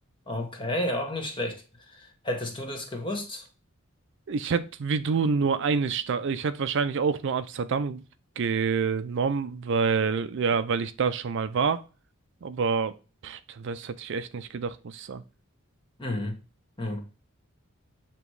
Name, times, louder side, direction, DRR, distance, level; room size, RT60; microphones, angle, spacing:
voice 1, 0.3-3.5 16.0-16.3 16.8-17.0, left 1 dB, 25° left, 1.3 m, -32 dB
voice 2, 4.3-8.0 8.4-11.8 12.4-12.9 13.2-15.2, right 5 dB, 60° right, 0.4 m, -27 dB
7.0 x 3.0 x 4.6 m
head